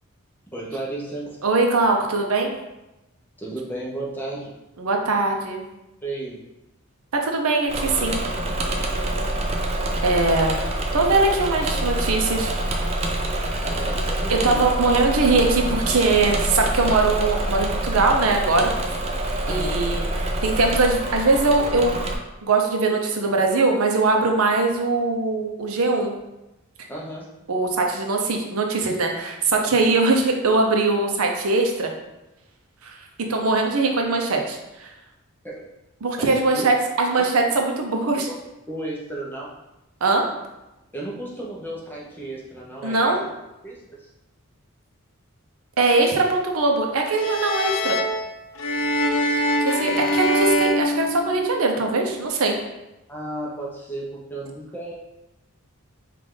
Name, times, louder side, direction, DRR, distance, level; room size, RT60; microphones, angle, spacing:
voice 1, 0.5-1.4 3.4-4.5 6.0-6.4 10.2-10.5 13.6-14.6 19.4-19.8 26.9-27.3 35.4-35.6 36.2-36.7 38.3-38.4 38.7-39.5 40.9-43.3 43.6-44.1 49.9-50.0 53.1-55.0, right 1 dB, 10° left, -4 dB, 0.8 m, -33 dB
voice 2, 1.4-2.5 4.8-5.6 7.1-8.2 10.0-10.6 10.9-12.6 14.3-18.7 19.5-21.9 22.4-26.2 27.5-31.9 32.8-33.0 33.3-34.9 36.0-38.3 40.0-40.3 42.8-43.2 45.8-48.0 49.6-52.6, right 3 dB, 80° right, 2 dB, 0.7 m, -21 dB
Engine / Mechanisms, 7.7-22.2, right 1 dB, 30° right, 0.4 m, -26 dB
sound 1, 47.1-51.7, equal, 70° left, 0.5 m, -24 dB
5.1 x 2.5 x 3.8 m, 0.97 s
head